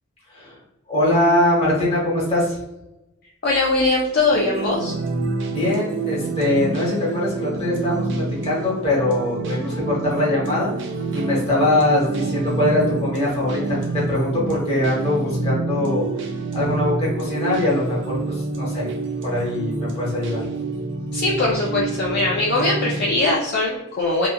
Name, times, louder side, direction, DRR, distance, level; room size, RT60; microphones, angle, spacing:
voice 1, 0.9-2.6 5.5-10.7 11.1-16.2 16.5-18.9 19.2-20.4, left 1 dB, 25° left, -5 dB, 1.0 m, -22 dB
voice 2, 3.4-4.9 21.1-24.3, left 2 dB, 45° left, -4 dB, 0.4 m, -21 dB
sound 1, 4.3-23.2, right 3 dB, 55° right, 0.4 m, -28 dB
2.9 x 2.2 x 2.2 m, 0.96 s
head